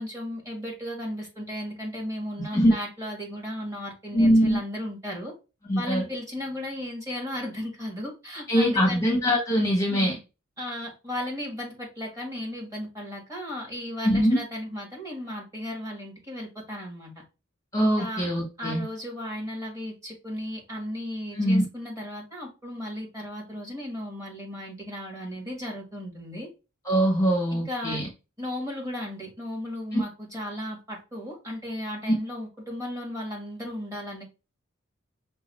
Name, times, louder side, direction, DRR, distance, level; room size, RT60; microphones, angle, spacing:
voice 1, 0.0-5.3 5.8-9.2 9.9-10.2 10.6-17.1 18.0-18.3 18.6-26.5 27.5-28.0 28.4-34.2, left 1 dB, 15° right, 1.7 m, -35 dB
voice 2, 4.1-4.6 5.7-6.1 8.5-10.2 14.0-14.4 17.7-18.8 21.3-21.6 26.8-28.1 29.9-30.0, equal, 15° left, 0.9 m, -22 dB
5.4 x 2.3 x 4.2 m
head